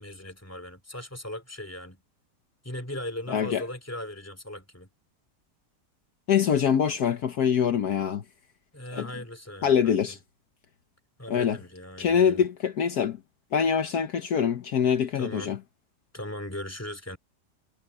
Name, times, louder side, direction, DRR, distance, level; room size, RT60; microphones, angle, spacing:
voice 1, 0.0-2.0 2.6-4.9 8.7-10.2 11.2-12.4 15.1-15.6 16.1-17.2, left 1 dB, 10° left, 3.1 m, -38 dB
voice 2, 3.3-3.6 6.3-8.2 8.9-9.1 9.6-10.2 11.3-11.6 12.0-13.2 13.5-15.6, left 7 dB, 70° left, 1.5 m, -24 dB
omnidirectional pair, 1.8 m